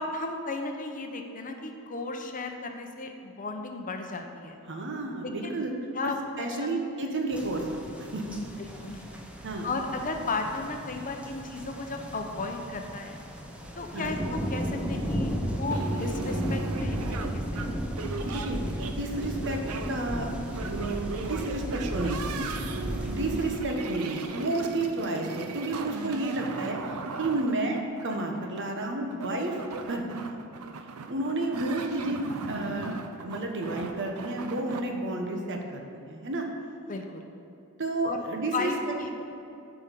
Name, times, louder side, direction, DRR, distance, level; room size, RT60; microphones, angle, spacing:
voice 1, 0.0-4.6 5.2-5.6 5.9-6.8 8.6-9.0 9.6-13.2 13.8-15.3 15.6-17.7 27.1-27.2 36.9-37.3 38.1-38.2 38.5-39.1, left 3 dB, 35° left, 4 dB, 0.7 m, -35 dB
voice 2, 4.7-5.7 6.0-6.1 6.4-7.6 8.0-8.4 9.4-9.7 13.9-14.1 18.2-19.6 19.9-20.3 20.6-22.6 23.1-29.6 29.9-30.4 31.1-36.5 37.8-38.9, right 2 dB, 55° right, 2 dB, 1.1 m, -31 dB
sound 1, 7.3-23.6, equal, 5° right, 0.8 m, -34 dB
sound 2, 15.7-34.8, right 4 dB, 85° right, 0.6 m, -38 dB
9.4 x 5.1 x 6.8 m, 2.7 s
head